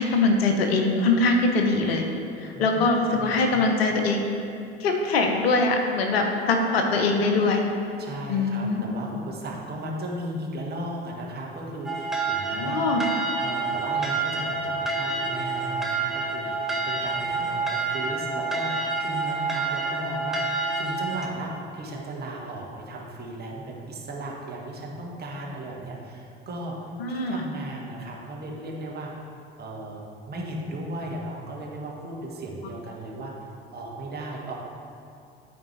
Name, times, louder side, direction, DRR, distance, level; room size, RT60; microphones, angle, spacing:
voice 1, 0.0-2.1 2.4-4.2 4.8-7.6 8.3-8.8 12.5-13.0 27.0-27.4, left 3 dB, 70° left, 3 dB, 0.9 m, -22 dB
voice 2, 3.1-3.7 8.0-12.8 13.1-29.1 29.6-34.6, right 1 dB, 30° right, -2 dB, 1.5 m, -36 dB
sound 1, 11.9-21.3, right 3 dB, ahead, 0.8 m, -28 dB
12.5 x 4.3 x 3.4 m, 2.5 s
figure-of-eight pair, 70°, 32 cm